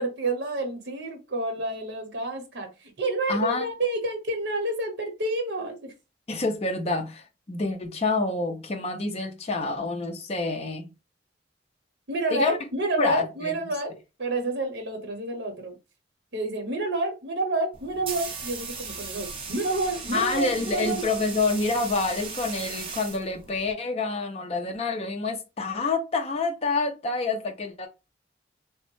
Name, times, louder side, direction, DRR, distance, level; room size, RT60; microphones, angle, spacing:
voice 1, 0.0-5.9 12.1-15.8 16.3-21.1, right 2 dB, 75° right, 0.8 m, -29 dB
voice 2, 3.3-3.7 6.3-10.9 12.3-12.6 13.0-13.5 20.1-27.9, left 3 dB, 35° left, 0.5 m, -27 dB
sound 1, 17.7-23.7, right 4 dB, 30° right, 0.6 m, -37 dB
3.2 x 2.0 x 3.0 m
head